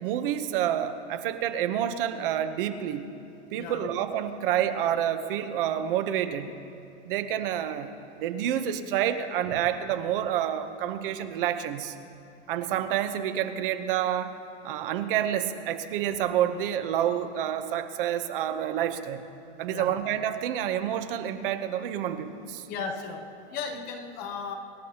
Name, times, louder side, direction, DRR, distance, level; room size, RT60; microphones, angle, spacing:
voice 1, 0.0-3.0 3.5-6.5 7.0-7.9 8.2-11.9 12.5-14.3 14.6-19.2 19.6-22.7, right 10 dB, 50° right, 9 dB, 0.9 m, -28 dB
voice 2, 3.6-3.9 19.7-19.9 22.7-24.5, left 5 dB, 25° left, 5 dB, 0.8 m, -36 dB
27.5 x 12.5 x 2.9 m, 2.7 s
supercardioid pair, 160°, 34 cm